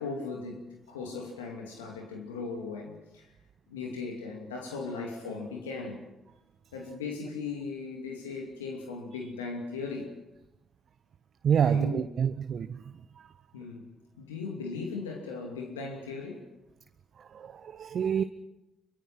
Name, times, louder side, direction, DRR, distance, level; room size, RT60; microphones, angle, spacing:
voice 1, 0.0-3.3 3.7-6.0 6.7-10.2 11.7-12.0 13.5-13.9 14.2-16.5, left 4 dB, 85° left, 2.6 m, -38 dB
voice 2, 11.4-13.3 17.2-18.2, right 8 dB, 55° right, 0.8 m, -28 dB
25.0 x 23.5 x 6.0 m
figure-of-eight pair, 45°, 0 cm